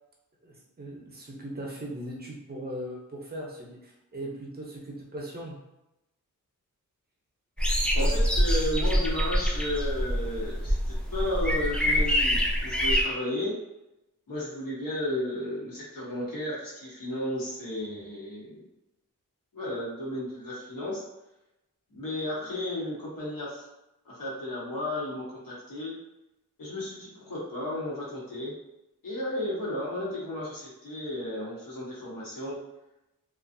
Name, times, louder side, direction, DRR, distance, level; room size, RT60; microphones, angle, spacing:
voice 1, 0.4-5.6, right 1 dB, 30° right, -2 dB, 0.6 m, -39 dB
sound 1, 7.6-13.0, equal, 5° left, 0.3 m, -25 dB
voice 2, 7.9-13.5 14.3-18.6 19.5-21.0 21.9-23.7 24.0-25.9 26.6-28.5 29.0-32.6, left 1 dB, 80° left, -6 dB, 1.1 m, -33 dB
2.5 x 2.4 x 2.5 m, 0.93 s
wide cardioid pair, 120°, 33 cm